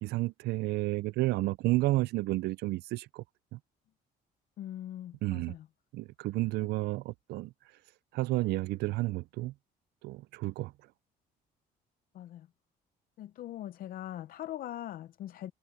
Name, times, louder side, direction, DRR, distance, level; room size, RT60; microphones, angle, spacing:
voice 1, 0.0-3.2 3.5-3.6 5.2-5.5 5.9-7.5 8.1-9.5 10.0-10.7, right 19 dB, 75° right, 0.4 m, -31 dB
voice 2, 4.6-5.7 12.1-12.5 13.2-15.5, left 12 dB, 60° left, 0.6 m, -41 dB
cardioid pair, 110°, 17 cm